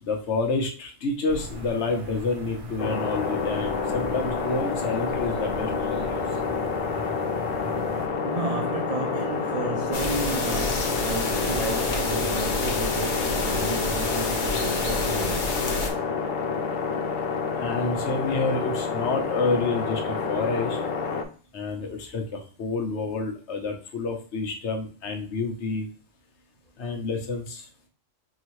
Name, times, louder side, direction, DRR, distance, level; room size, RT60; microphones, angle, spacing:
voice 1, 0.0-6.2 17.6-20.8 21.5-25.9 26.8-27.7, left 3 dB, 65° left, 1.1 m, -29 dB
sound 1, 1.3-8.1, left 1 dB, 30° right, 0.8 m, -38 dB
sound 2, 2.8-21.2, left 5 dB, 90° left, 1.0 m, -28 dB
voice 2, 8.2-15.5, right 3 dB, 70° right, 0.3 m, -32 dB
sound 3, 9.9-15.9, left 2 dB, 45° left, 0.8 m, -29 dB
4.7 x 2.8 x 3.0 m
omnidirectional pair, 1.3 m